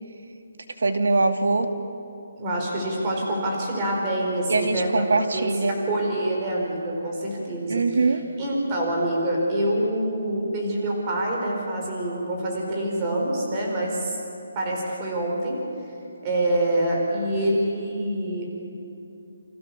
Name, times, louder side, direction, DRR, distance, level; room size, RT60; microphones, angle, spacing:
voice 1, 0.8-1.7 4.5-5.8 7.7-8.2, right 3 dB, 80° right, 6 dB, 2.6 m, -22 dB
voice 2, 2.4-7.8 8.4-14.2 14.5-15.6 16.2-18.6, right 1 dB, 20° right, -1 dB, 4.8 m, -26 dB
29.0 x 26.5 x 7.1 m, 2.7 s
hypercardioid pair, 175°, 0 cm